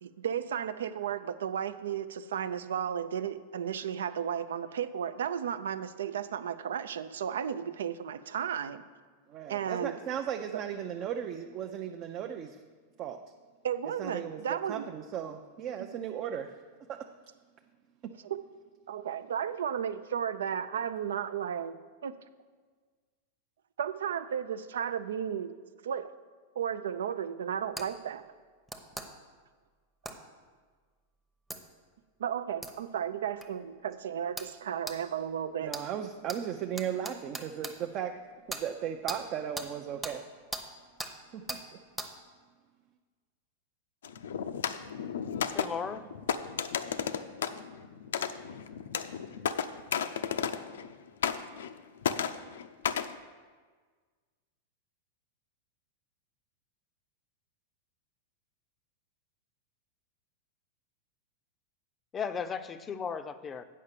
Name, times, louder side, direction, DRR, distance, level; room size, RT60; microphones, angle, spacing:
voice 1, 0.0-8.8 9.5-9.9 13.6-14.8 15.8-15.9 18.2-18.4 18.9-22.2 23.8-26.1 26.6-28.2 32.2-35.7, right 8 dB, 90° right, 13 dB, 0.5 m, -34 dB
voice 2, 9.3-12.6 13.0-13.2 14.0-16.6 16.9-17.0 18.0-18.1 35.6-38.1 38.5-40.2 41.3-41.8, right 9 dB, 35° right, 4 dB, 0.5 m, -36 dB
sound 1, 27.8-27.9 28.7-29.1 30.1-30.2 31.5-31.6 32.6-32.7 33.4-33.5 34.4-34.5 34.9-35.0 35.7-35.9 36.3-36.4 36.8-37.7 38.5-38.6 39.1-39.2 39.6-39.7 40.0-40.2 40.5-40.7 41.0-41.1 41.5-41.6 42.0-42.1, right 1 dB, 5° right, 0.8 m, -38 dB
sound 2, 44.0-50.9 51.2-51.8 52.0-53.1, left 7 dB, 90° left, 0.5 m, -33 dB
voice 3, 45.5-46.1 62.1-63.6, left 6 dB, 20° left, 11 dB, 0.5 m, -35 dB
8.5 x 5.6 x 6.7 m, 1.5 s
supercardioid pair, 135°, 0 cm